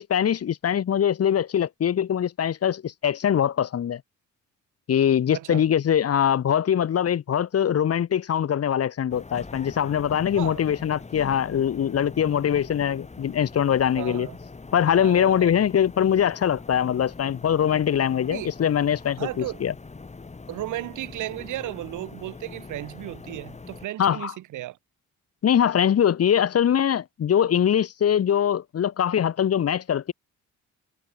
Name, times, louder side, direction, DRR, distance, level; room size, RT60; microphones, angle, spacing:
voice 1, 0.0-4.0 4.9-14.3 14.7-19.7 24.0-24.3 25.4-30.1, left 9 dB, 55° left, 1.7 m, -22 dB
voice 2, 5.3-5.6 10.4-10.6 13.9-14.4 14.9-15.5 18.3-18.5 19.2-19.6 20.5-24.8, right 15 dB, 80° right, 1.2 m, -34 dB
sound 1, 9.1-23.9, left 3 dB, 20° left, 2.4 m, -42 dB
cardioid pair, 90°, 30 cm